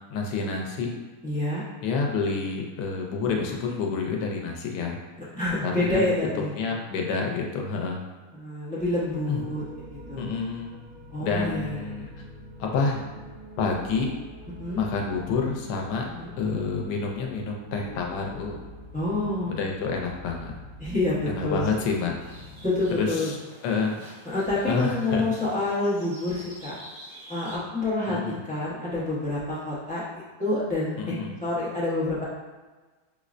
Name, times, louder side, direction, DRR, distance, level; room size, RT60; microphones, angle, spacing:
voice 1, 0.1-0.9 1.8-5.0 5.6-5.7 6.6-8.0 9.3-9.4 10.2-10.7 11.2-12.1 12.6-13.1 13.6-14.1 14.8-16.1 16.4-18.6 19.5-20.5 21.3-22.1 23.0-23.4 23.6-23.9 24.7-25.3 28.1-28.4 31.0-31.3, left 4 dB, 90° left, 1 dB, 1.2 m, -28 dB
voice 2, 1.2-1.6 5.3-6.5 8.3-9.6 9.9-10.3 11.1-12.1 14.6-14.8 16.2-16.3 18.9-19.5 20.8-21.7 22.6-23.3 24.2-26.7 27.3-32.2, left 2 dB, 10° left, -9 dB, 0.5 m, -28 dB
sound 1, 9.0-23.1, left 1 dB, 25° right, 0.9 m, -45 dB
sound 2, 22.2-27.6, right 1 dB, 55° right, 1.4 m, -48 dB
5.2 x 2.1 x 2.4 m, 1.3 s
omnidirectional pair, 1.7 m